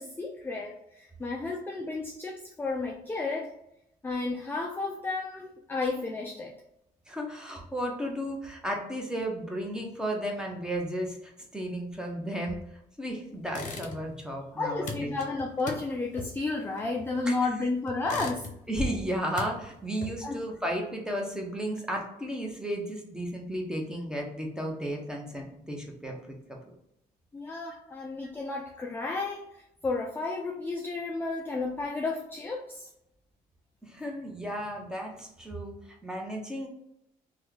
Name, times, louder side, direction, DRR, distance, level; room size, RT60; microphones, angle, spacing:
voice 1, 0.0-3.6 4.0-6.5 14.5-18.5 20.2-20.4 27.3-32.9, left 3 dB, 15° left, 1 dB, 0.4 m, -32 dB
voice 2, 7.1-12.6 13.0-15.2 17.2-17.3 18.7-26.6 33.8-36.7, equal, 5° right, 0 dB, 0.9 m, -34 dB
sound 1, 13.5-14.3 14.5-17.4 17.9-18.8 19.1-20.4, left 3 dB, 50° left, 0.8 m, -40 dB
3.0 x 2.3 x 3.7 m, 0.79 s
cardioid pair, 90°, 16 cm